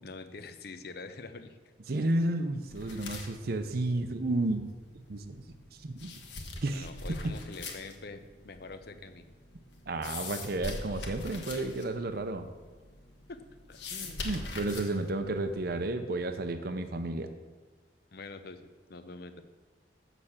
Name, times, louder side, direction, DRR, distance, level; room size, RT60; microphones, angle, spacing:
voice 1, 0.0-1.6 6.7-9.2 13.3-13.4 13.7-14.3 18.1-18.6 18.9-19.4, left 3 dB, 60° left, 10 dB, 0.8 m, -45 dB
voice 2, 1.9-4.7 5.1-5.4 5.8-6.1 6.6-6.9 7.2-7.3 9.9-12.5 14.2-17.3, right 2 dB, 55° right, 8 dB, 0.6 m, -32 dB
sound 1, 2.7-15.8, left 2 dB, 75° left, 1.4 m, -44 dB
8.1 x 6.6 x 7.2 m, 1.4 s
head